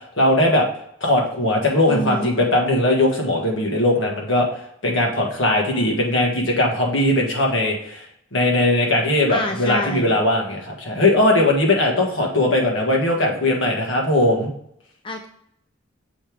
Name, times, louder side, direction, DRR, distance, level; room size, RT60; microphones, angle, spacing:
voice 1, 0.2-0.7 1.0-4.5 4.8-8.0 8.3-14.5, left 1 dB, 80° left, 0 dB, 1.8 m, -19 dB
voice 2, 1.9-2.3 9.3-10.2 15.0-15.3, equal, 25° left, 3 dB, 0.5 m, -27 dB
7.0 x 3.6 x 4.7 m, 0.72 s
head